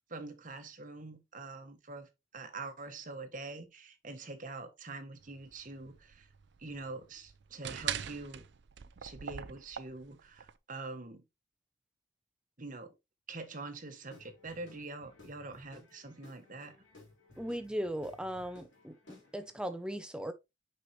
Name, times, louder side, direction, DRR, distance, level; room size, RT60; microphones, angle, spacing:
voice 1, 0.1-6.3 6.6-8.4 9.0-11.2 12.6-12.9 13.3-16.8, right 3 dB, 40° right, 1.1 m, -45 dB
sound 1, 5.2-10.5, right 9 dB, 55° right, 0.5 m, -42 dB
Guitar / Drum, 14.1-19.6, left 2 dB, 60° left, 3.2 m, -58 dB
voice 2, 17.4-20.3, equal, 5° right, 0.6 m, -38 dB
6.0 x 5.5 x 3.1 m
head